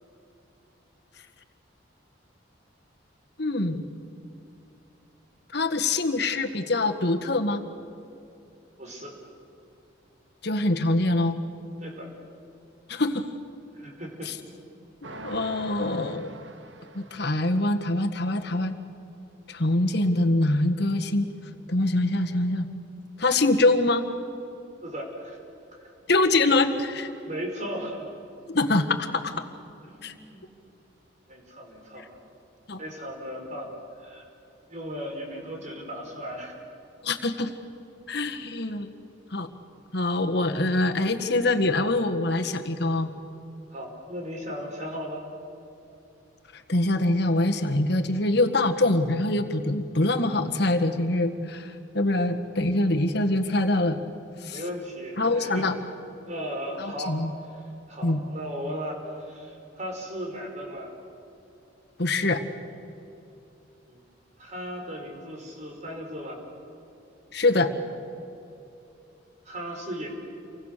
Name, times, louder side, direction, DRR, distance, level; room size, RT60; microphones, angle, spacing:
voice 1, 3.4-3.8 5.5-7.6 10.4-11.4 12.9-13.3 14.3-14.4 15.2-16.3 16.9-18.8 19.5-21.3 21.7-22.7 23.2-24.0 26.1-27.1 28.5-29.4 30.0-30.1 32.7-32.8 37.0-37.5 38.1-38.9 39.3-39.5 39.9-43.1 46.5-54.0 54.4-54.6 55.2-55.7 56.8-57.3 58.0-58.2 62.0-62.4 67.3-67.7, left 2 dB, 60° left, 6 dB, 1.7 m, -24 dB
voice 2, 8.8-9.2 11.8-12.1 13.8-14.3 24.8-25.4 25.8-25.9 27.3-28.1 29.8-30.4 31.3-32.1 32.8-33.7 34.0-34.3 34.7-36.6 43.7-45.2 54.5-55.7 56.2-57.2 57.5-57.6 57.9-60.9 63.9-64.0 64.4-66.4 69.5-70.1, equal, 40° right, 1 dB, 5.2 m, -36 dB
sound 1, 15.0-17.8, right 2 dB, 80° right, 1.7 m, -43 dB
29.5 x 24.5 x 6.8 m, 2.8 s
head